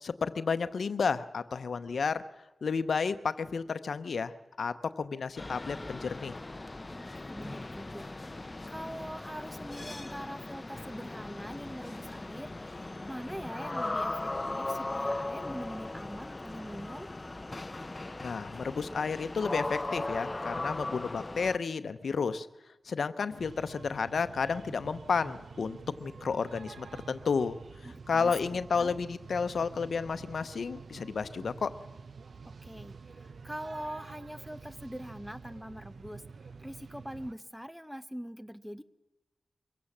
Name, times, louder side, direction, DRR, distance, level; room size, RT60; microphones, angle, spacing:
voice 1, 0.0-2.2 2.6-6.4 18.2-22.5 22.9-27.6 28.1-31.7, left 5 dB, 80° left, 12 dB, 0.8 m, -32 dB
sound 1, 5.4-21.6, left 2 dB, 30° left, 0.7 m, -38 dB
voice 2, 7.0-17.1 27.8-28.3 28.7-28.9 32.4-38.8, equal, ahead, 13 dB, 0.9 m, -43 dB
sound 2, 23.4-37.3, right 5 dB, 75° right, 0.7 m, -48 dB
24.0 x 16.0 x 7.3 m, 1.0 s
cardioid pair, 60°, 0 cm